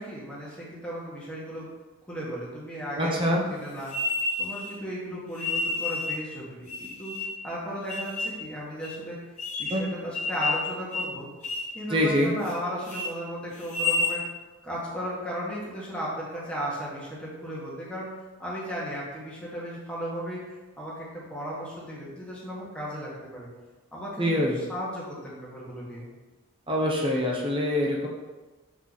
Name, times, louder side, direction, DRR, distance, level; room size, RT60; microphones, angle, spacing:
voice 1, 0.0-1.7 2.1-3.9 4.4-7.1 7.4-9.2 9.6-11.3 11.7-14.2 14.6-18.1 18.4-20.4 20.8-23.5 23.9-26.1, equal, 5° left, -6 dB, 1.5 m, -35 dB
voice 2, 3.0-3.4 9.7-9.8 11.9-12.3 24.2-24.6 26.7-28.1, equal, 25° right, -2 dB, 1.0 m, -24 dB
sound 1, 3.9-4.7 5.4-6.2 6.7-7.4 7.9-8.4 8.8-8.9 9.4-9.8 10.1-10.7 10.9-11.1 11.4-11.7 12.1-12.6 12.8-13.1 13.6-14.2, left 3 dB, 35° left, 0.9 m, -30 dB
6.2 x 4.6 x 4.1 m, 1.2 s
head